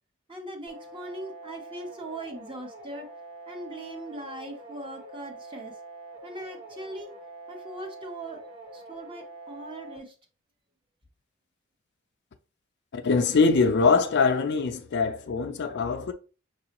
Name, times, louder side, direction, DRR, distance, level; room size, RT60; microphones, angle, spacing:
voice 1, 0.3-3.1 3.5-5.8 6.2-7.1 7.5-8.4 8.7-10.1, right 1 dB, 25° right, 0.9 m, -40 dB
sound 1, 0.7-10.0, right 2 dB, 70° right, 1.3 m, -45 dB
voice 2, 12.9-16.1, left 4 dB, 55° left, 0.4 m, -23 dB
5.9 x 2.3 x 2.9 m
head